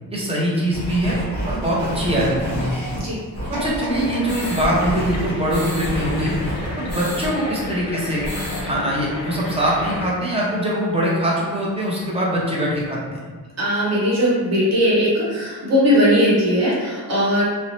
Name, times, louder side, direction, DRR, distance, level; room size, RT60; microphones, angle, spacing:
voice 1, 0.1-1.2 1.5-2.8 3.5-6.3 6.8-8.3 8.6-13.3, equal, 15° right, -5 dB, 0.5 m, -22 dB
sound 1, 0.7-7.3 7.6-7.7 8.0-8.6, equal, 25° left, 1.2 m, -28 dB
sound 2, 3.5-6.6 7.1-7.2, equal, 70° right, 0.9 m, -33 dB
sound 3, 3.9-10.1, left 1 dB, 45° left, 0.7 m, -32 dB
voice 2, 13.6-17.4, equal, 40° right, -7 dB, 0.9 m, -18 dB
2.5 x 2.0 x 2.9 m, 1.4 s
wide cardioid pair, 145°, 41 cm